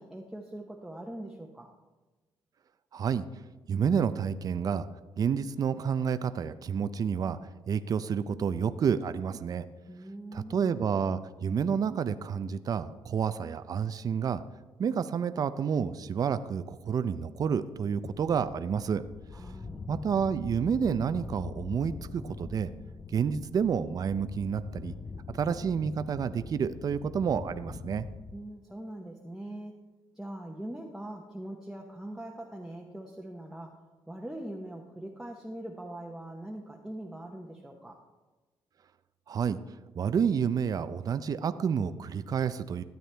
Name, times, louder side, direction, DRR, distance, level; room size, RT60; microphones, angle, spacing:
voice 1, 0.0-1.7 9.9-10.9 19.3-19.8 28.3-29.8 30.1-33.8 34.1-38.0, right 1 dB, 5° right, 0 dB, 1.0 m, -42 dB
voice 2, 2.9-3.2 3.7-4.9 5.2-7.4 7.7-9.6 10.3-14.4 14.8-19.0 19.9-22.7 23.1-24.9 25.3-28.0 39.3-39.6 40.0-42.8, right 7 dB, 45° right, 12 dB, 0.5 m, -29 dB
sound 1, 18.0-28.4, left 4 dB, 25° left, 0.5 m, -43 dB
13.0 x 9.1 x 3.4 m, 1.2 s
cardioid pair, 105°, 9 cm